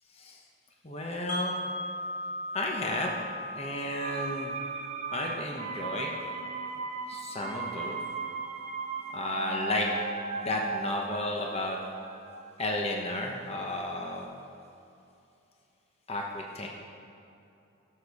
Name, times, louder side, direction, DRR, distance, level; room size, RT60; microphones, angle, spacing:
voice 1, 0.8-1.6 2.5-3.1 3.5-4.5 5.1-6.1 7.1-8.0 9.1-9.9 10.4-11.8 12.6-14.3 16.1-16.7, left 1 dB, 30° left, 0 dB, 1.0 m, -33 dB
Wind chime, 1.3-7.3, left 1 dB, 45° left, 2.9 m, -39 dB
sound 1, 4.0-13.7 14.0-14.1, right 4 dB, 35° right, 1.1 m, -37 dB
17.5 x 7.1 x 4.9 m, 2.7 s
head